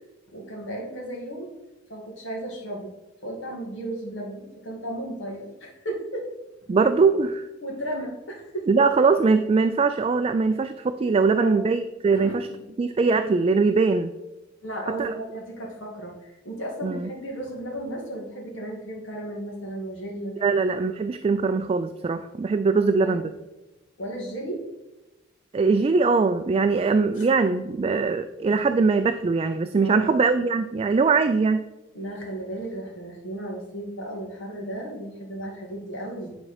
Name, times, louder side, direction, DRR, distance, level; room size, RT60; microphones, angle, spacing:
voice 1, 0.3-1.5 1.9-2.9 3.2-6.3 7.6-8.9 11.3-11.6 12.1-12.6 14.6-20.5 22.7-23.3 24.0-24.6 27.2-27.3 29.8-30.1 31.9-36.4, right 1 dB, 75° left, -1 dB, 2.3 m, -34 dB
voice 2, 6.7-7.5 8.7-12.5 12.8-14.1 15.0-15.2 16.8-17.1 20.4-23.2 25.5-31.7, right 4 dB, 30° right, 9 dB, 0.3 m, -21 dB
9.3 x 4.2 x 4.9 m, 1.0 s
head